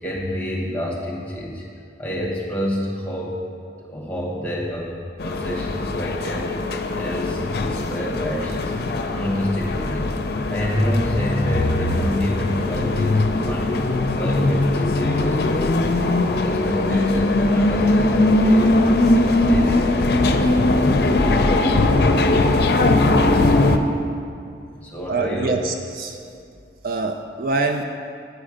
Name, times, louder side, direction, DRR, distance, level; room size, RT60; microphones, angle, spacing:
voice 1, 0.0-1.6 2.0-3.4 3.9-6.6 6.9-8.8 9.1-10.2 10.5-13.8 14.1-16.0 16.4-20.7 24.8-25.5 26.2-26.3, equal, 5° left, -4 dB, 1.1 m, -28 dB
sound 1, 5.2-23.8, left 2 dB, 55° left, 0.5 m, -20 dB
voice 2, 25.1-26.2 26.8-27.8, right 3 dB, 50° right, 5 dB, 0.4 m, -24 dB
8.2 x 5.3 x 4.9 m, 2.4 s
head